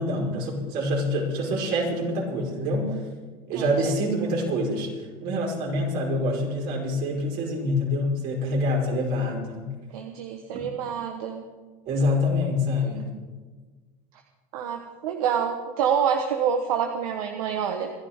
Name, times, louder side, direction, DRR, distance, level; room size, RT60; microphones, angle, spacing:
voice 1, 0.0-2.9 3.5-9.7 10.5-10.7 11.8-13.1, left 1 dB, 60° right, -1 dB, 5.0 m, -26 dB
voice 2, 3.6-3.9 9.9-11.4 14.5-17.9, right 7 dB, 80° right, 4 dB, 1.3 m, -27 dB
26.5 x 11.0 x 3.7 m, 1.4 s
hypercardioid pair, 90°, 18 cm